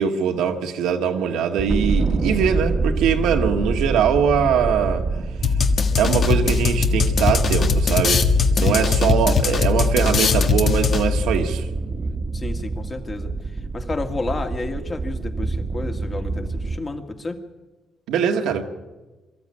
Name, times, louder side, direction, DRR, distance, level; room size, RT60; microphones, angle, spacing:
voice 1, 0.0-5.0 6.0-8.3 8.6-11.7 18.1-18.6, right 7 dB, 90° right, 1.7 m, -22 dB
sound 1, 1.6-16.8, right 3 dB, 35° right, 1.4 m, -27 dB
sound 2, 5.4-11.3, left 5 dB, 55° left, 1.4 m, -20 dB
voice 2, 8.5-9.8 12.3-13.3 13.7-17.4, left 3 dB, 30° left, 2.2 m, -31 dB
23.0 x 13.5 x 8.7 m
cardioid pair, 90°, 0 cm